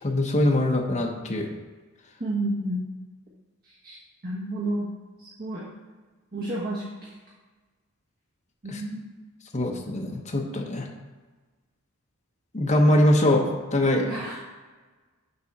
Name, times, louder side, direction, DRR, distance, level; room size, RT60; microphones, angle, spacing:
voice 1, 0.0-1.5 8.7-8.8 9.5-10.9 12.5-14.1, left 1 dB, 35° left, 0 dB, 0.9 m, -22 dB
voice 2, 2.2-2.8 3.8-4.0 4.2-4.9 5.4-5.6 6.3-6.8 8.6-9.0 14.0-14.4, right 1 dB, 45° right, -6 dB, 1.3 m, -30 dB
6.7 x 3.8 x 5.9 m, 1.3 s
head